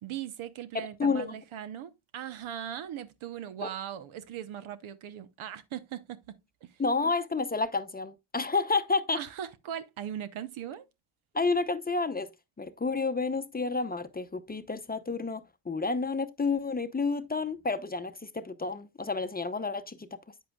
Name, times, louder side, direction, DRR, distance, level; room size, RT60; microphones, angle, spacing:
voice 1, 0.0-6.7 9.1-10.9, right 10 dB, 75° right, 1.0 m, -39 dB
voice 2, 0.7-1.4 3.6-3.7 6.8-9.2 11.3-12.3 12.6-20.1, left 4 dB, 20° left, 0.7 m, -30 dB
9.0 x 7.8 x 2.3 m
cardioid pair, 75°, 49 cm